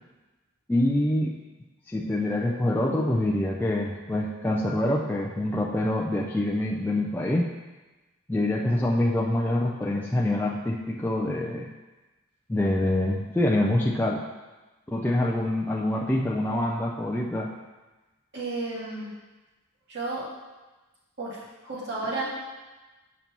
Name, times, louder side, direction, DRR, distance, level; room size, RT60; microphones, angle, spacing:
voice 1, 0.7-1.3 1.9-7.5 8.3-11.7 12.5-14.2 14.9-17.5, left 1 dB, 10° left, -3 dB, 0.3 m, -25 dB
voice 2, 18.3-19.1 19.9-20.3 21.2-22.3, right 2 dB, 55° right, -6 dB, 1.9 m, -32 dB
7.1 x 5.3 x 2.9 m, 1.2 s
head